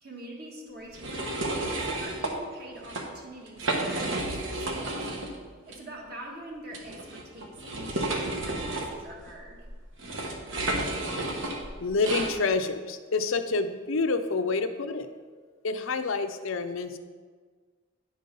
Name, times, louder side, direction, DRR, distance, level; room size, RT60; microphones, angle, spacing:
voice 1, 0.0-5.1 5.7-9.7, right 1 dB, 50° right, -1 dB, 1.6 m, -44 dB
sound 1, 0.9-2.3 2.8-3.0 3.5-5.4 5.7-5.8 6.7-12.3, right 2 dB, 70° right, 1.2 m, -32 dB
voice 2, 11.8-15.1 15.6-17.0, left 3 dB, 80° left, 8 dB, 0.6 m, -28 dB
9.8 x 5.2 x 5.4 m, 1.5 s
head